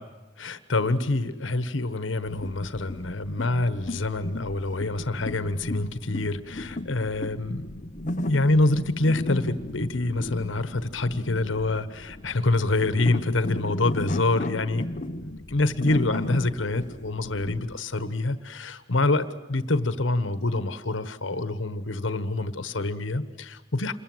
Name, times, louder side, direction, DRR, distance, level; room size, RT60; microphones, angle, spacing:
voice 1, 0.4-7.8 8.2-14.8 15.2-23.9, left 2 dB, 80° left, 12 dB, 1.3 m, -26 dB
sound 1, 2.3-17.8, left 1 dB, 40° left, 1.0 m, -35 dB
27.5 x 22.0 x 7.9 m, 1.2 s
head